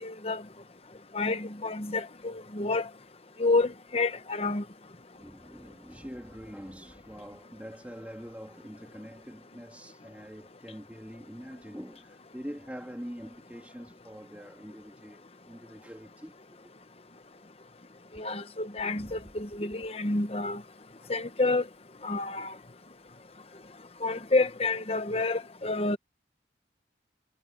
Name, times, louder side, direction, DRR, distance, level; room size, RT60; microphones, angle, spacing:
voice 1, 0.0-0.4 1.1-2.9 3.4-4.6 18.1-20.6 21.1-21.6 22.0-22.5 24.0-26.0, left 3 dB, 35° left, 1.0 m, -29 dB
voice 2, 5.2-16.4 18.9-19.3 21.0-21.1, equal, 10° right, 2.8 m, -44 dB
head